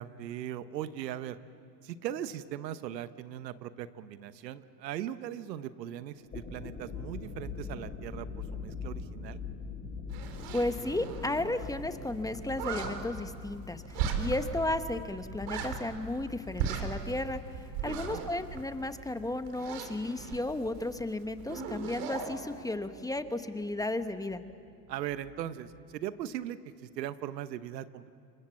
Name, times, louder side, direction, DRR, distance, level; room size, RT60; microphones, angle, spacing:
voice 1, 0.0-1.4 1.8-9.4 17.8-18.2 24.9-28.1, right 11 dB, 80° right, 13 dB, 1.2 m, -39 dB
sound 1, 6.2-25.8, left 4 dB, 25° left, 6.7 m, -44 dB
sound 2, 10.1-11.6 11.9-12.0 12.2-12.9 13.9-14.6 14.9-15.0 15.3-16.3 16.5-19.1 19.5-21.0 21.3-22.4, right 7 dB, 65° right, 3.9 m, -37 dB
voice 2, 10.5-24.4, left 2 dB, 5° left, 10 dB, 1.1 m, -34 dB
28.5 x 24.0 x 7.3 m, 2.3 s
hypercardioid pair, 95°, 49 cm